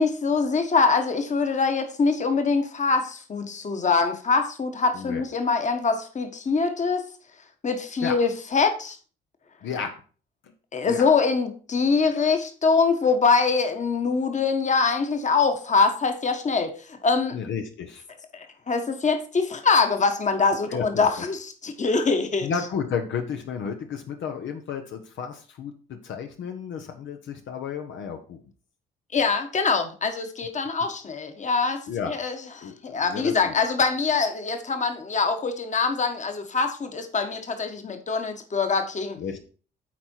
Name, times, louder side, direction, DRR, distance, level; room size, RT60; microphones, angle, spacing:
voice 1, 0.0-7.0 7.6-9.0 10.7-17.4 18.3-22.5 29.1-39.2, left 4 dB, 35° left, 1.4 m, -24 dB
voice 2, 9.6-10.0 10.8-11.1 17.3-18.0 20.7-21.2 22.4-28.4 31.9-32.1 32.6-33.5 39.2-39.4, left 6 dB, 70° left, 1.0 m, -32 dB
8.7 x 4.3 x 4.5 m
cardioid pair, 90°, 20 cm